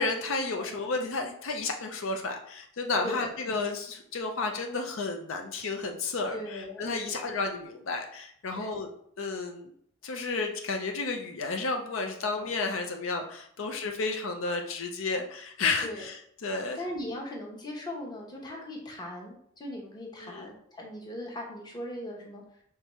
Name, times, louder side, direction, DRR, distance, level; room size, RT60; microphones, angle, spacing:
voice 1, 0.0-8.9 9.2-9.7 10.0-16.8 20.2-20.5, left 3 dB, 85° left, 4 dB, 0.6 m, -32 dB
voice 2, 6.3-7.2 8.6-8.7 12.3-12.5 13.6-13.8 15.8-16.1 16.7-22.4, left 1 dB, 20° left, -1 dB, 0.9 m, -39 dB
5.0 x 3.3 x 3.1 m, 0.66 s
head